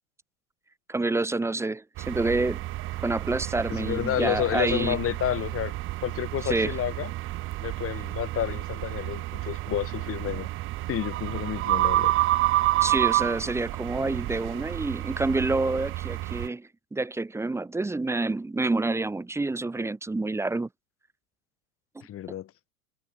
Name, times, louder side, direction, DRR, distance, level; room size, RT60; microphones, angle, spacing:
voice 1, 0.9-2.6 3.0-5.0 6.5-6.7 12.8-20.7, right 2 dB, 5° right, 1.4 m, -28 dB
sound 1, 2.0-16.5, right 17 dB, 30° right, 0.9 m, -29 dB
voice 2, 3.7-5.7 6.0-7.1 7.6-10.5 10.9-12.1 22.0-22.5, left 11 dB, 30° left, 7.5 m, -30 dB
figure-of-eight pair, 95°, 44 cm